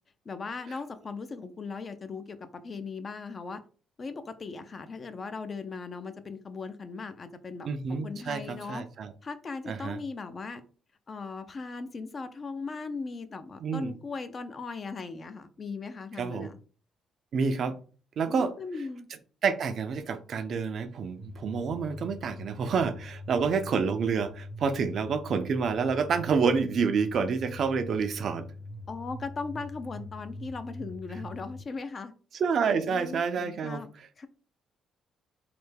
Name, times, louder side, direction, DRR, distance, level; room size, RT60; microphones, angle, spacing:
voice 1, 0.3-3.6 4.0-8.9 9.2-10.6 11.1-16.6 18.2-19.1 28.9-32.1 32.7-33.9 34.2-34.3, left 4 dB, 35° left, 0.4 m, -38 dB
voice 2, 7.7-9.1 9.7-10.0 13.6-13.9 16.2-16.5 17.3-17.8 18.2-18.5 19.4-28.5 32.4-33.8, right 5 dB, 55° right, 0.4 m, -28 dB
sound 1, 21.2-31.6, left 1 dB, 5° right, 0.6 m, -43 dB
3.2 x 2.1 x 3.2 m
cardioid pair, 100°, 0 cm